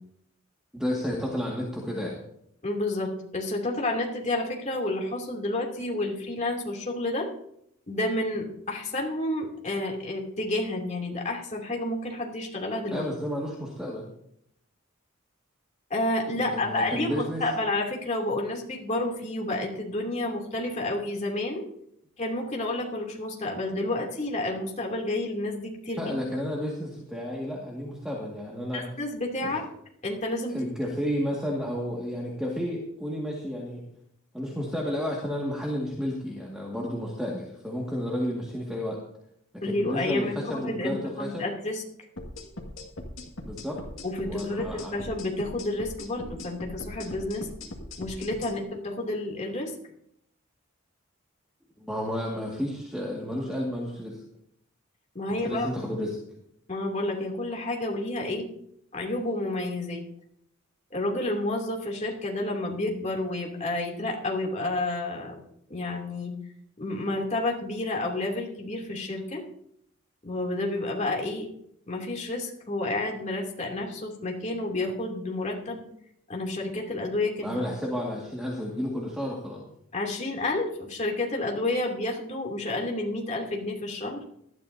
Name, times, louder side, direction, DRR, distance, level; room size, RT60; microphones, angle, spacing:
voice 1, 0.7-2.2 12.9-14.1 16.3-17.4 26.0-28.8 29.4-29.5 30.5-33.8 34.3-39.0 39.5-41.4 43.4-43.8 44.3-45.0 51.8-54.2 55.4-56.2 77.4-79.6, equal, 5° right, -3 dB, 2.0 m, -31 dB
voice 2, 2.6-7.3 7.9-13.0 15.9-21.7 22.2-26.1 28.7-29.6 30.0-30.6 39.6-41.8 44.0-47.5 48.0-49.7 55.1-55.7 56.7-58.5 58.9-60.0 60.9-65.4 65.7-66.3 66.8-69.4 70.2-71.5 71.9-75.8 76.3-77.5 79.9-84.2, left 2 dB, 35° left, 0 dB, 2.9 m, -30 dB
sound 1, 42.2-48.5, left 1 dB, 70° left, 2.0 m, -40 dB
18.5 x 13.0 x 2.8 m, 0.72 s
head